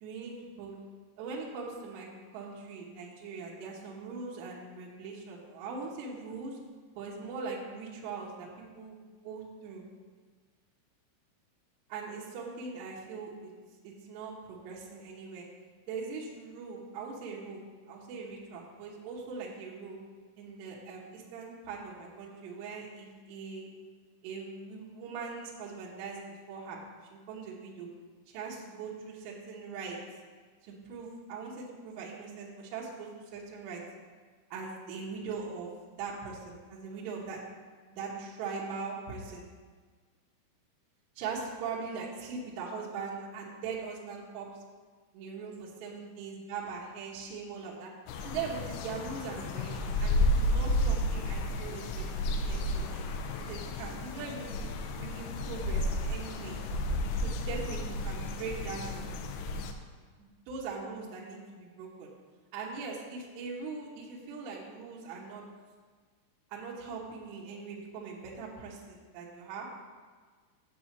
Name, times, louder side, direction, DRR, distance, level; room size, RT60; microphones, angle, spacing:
voice 1, 0.0-0.8 1.2-2.1 2.3-6.6 7.0-9.8 11.9-13.5 13.8-15.5 15.9-17.6 17.9-20.0 20.4-23.7 24.2-26.8 27.1-27.9 28.3-30.0 30.6-33.8 34.5-35.7 36.0-37.4 37.9-39.4 41.2-44.6 45.1-47.9 48.2-53.1 53.5-54.6 55.0-56.6 57.2-59.1 60.2-62.1 62.5-65.4 66.5-69.7, right 5 dB, 70° right, -3 dB, 2.8 m, -41 dB
sound 1, 48.1-59.7, left 1 dB, 90° left, 3.5 m, -32 dB
8.4 x 4.8 x 7.3 m, 1.5 s
omnidirectional pair, 6.0 m